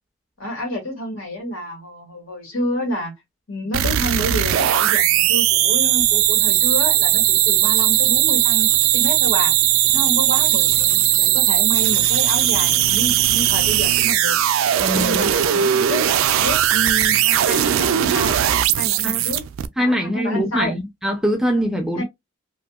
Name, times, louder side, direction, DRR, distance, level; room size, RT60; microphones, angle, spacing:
voice 1, 0.4-3.1 3.5-9.5 9.9-14.4 14.9-16.0 16.4-18.4 18.8-19.4 19.8-20.7 22.0-22.1, equal, 75° left, 1.7 m, -28 dB
sound 1, 3.7-19.7, right 12 dB, 75° right, 0.3 m, -18 dB
voice 2, 14.8-15.6 19.0-19.2 19.8-22.0, equal, ahead, 0.4 m, -23 dB
2.7 x 2.6 x 2.3 m
head